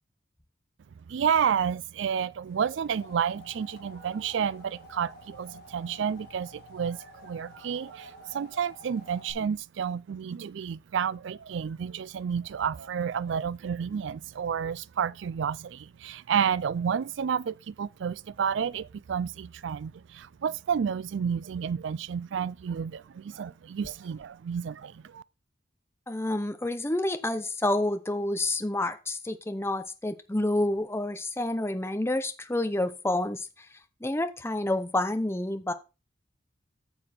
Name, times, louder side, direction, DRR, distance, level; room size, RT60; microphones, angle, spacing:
voice 1, 1.1-25.2, right 7 dB, 65° right, 0.4 m, -30 dB
sound 1, 2.6-9.3, left 1 dB, 55° left, 2.0 m, -50 dB
voice 2, 26.1-33.5 34.0-35.7, left 1 dB, 15° left, 0.7 m, -29 dB
8.7 x 6.9 x 4.3 m
head